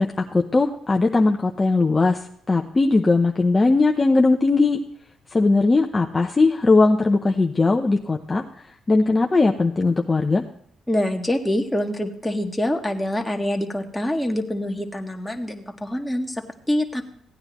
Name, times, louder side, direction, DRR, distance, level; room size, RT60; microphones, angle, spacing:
voice 1, 0.0-4.8 5.3-8.4 8.9-10.4, left 3 dB, 25° left, 2 dB, 0.8 m, -19 dB
voice 2, 10.9-17.0, left 1 dB, 10° left, 2 dB, 1.6 m, -25 dB
16.0 x 9.5 x 3.0 m, 0.66 s
cardioid pair, 90°, 0 cm